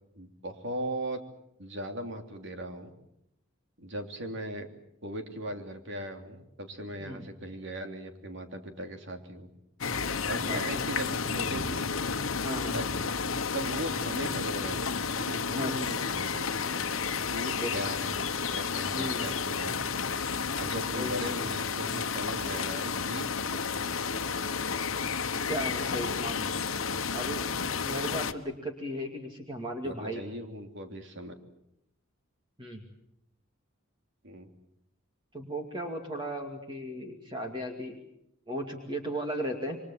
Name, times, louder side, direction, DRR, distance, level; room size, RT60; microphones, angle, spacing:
voice 1, 0.1-1.2 1.6-2.9 3.8-4.7 5.0-9.5 10.3-11.9 12.7-12.9 13.5-14.8 15.1-16.5 17.3-18.2 18.5-19.8 20.6-23.3 29.8-31.4 34.2-34.5, right 1 dB, 60° right, 5 dB, 3.1 m, -38 dB
sound 1, 9.8-28.3, left 5 dB, 75° left, 1.2 m, -31 dB
voice 2, 10.4-10.8 12.4-12.8 15.5-15.7 17.6-17.7 18.9-19.3 20.9-21.2 25.5-26.5 27.1-27.4 27.8-30.2 32.6-32.8 35.3-38.0 38.5-39.8, equal, 25° right, 2 dB, 2.5 m, -36 dB
28.5 x 24.0 x 7.4 m, 0.78 s
head